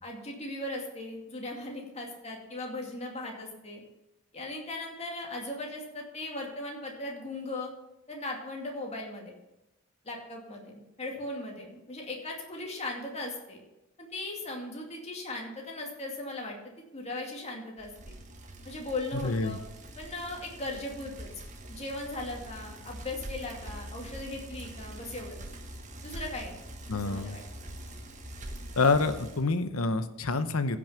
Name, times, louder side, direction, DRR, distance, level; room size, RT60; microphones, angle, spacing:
voice 1, 0.0-3.8 4.3-7.7 8.1-9.3 10.0-13.6 14.0-17.9 18.6-19.6 20.0-21.3 21.7-25.4 26.0-26.6 26.9-27.4, left 2 dB, 30° left, 0 dB, 2.4 m, -38 dB
Bicycle, 17.8-29.5, right 1 dB, 35° right, 1.3 m, -44 dB
voice 2, 19.2-19.6 26.9-27.4 28.8-30.8, left 3 dB, 75° left, 11 dB, 0.9 m, -27 dB
15.5 x 6.3 x 5.7 m, 0.97 s
head